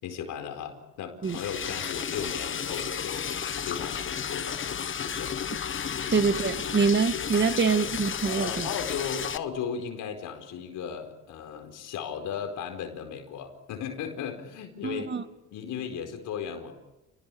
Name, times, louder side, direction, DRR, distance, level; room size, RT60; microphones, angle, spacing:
voice 1, 0.0-3.3 3.7-4.6 4.9-5.4 6.0-6.2 8.3-15.1 15.5-16.7, left 7 dB, 85° left, 6 dB, 4.7 m, -36 dB
Liquid, 1.2-9.4, left 7 dB, 40° left, 1.1 m, -33 dB
voice 2, 6.1-8.7 14.8-15.2, right 5 dB, 35° right, 9 dB, 2.1 m, -25 dB
29.5 x 19.5 x 8.8 m, 0.98 s
cardioid pair, 90°, 30 cm